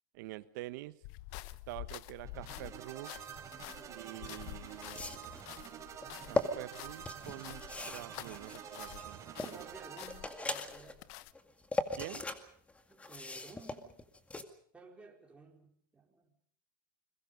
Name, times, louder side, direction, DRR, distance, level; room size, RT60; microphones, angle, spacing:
voice 1, 0.1-1.0 1.7-3.1 3.9-5.4 6.3-9.6 12.0-12.2, right 18 dB, 65° right, 1.2 m, -46 dB
sound 1, 1.0-9.1 9.4-11.3, left 18 dB, 60° left, 0.9 m, -49 dB
sound 2, 2.2-10.7, right 8 dB, 30° right, 3.8 m, -48 dB
voice 2, 3.8-4.5 9.4-11.0 12.9-14.0 14.7-16.3, right 4 dB, 10° right, 4.5 m, -55 dB
sound 3, 4.1-4.2 4.8-5.4 6.0-6.5 7.1-9.6 10.0-10.9 11.3-12.4 12.7-14.4, left 3 dB, 10° left, 2.1 m, -38 dB
29.0 x 22.0 x 5.3 m
supercardioid pair, 115°, 11 cm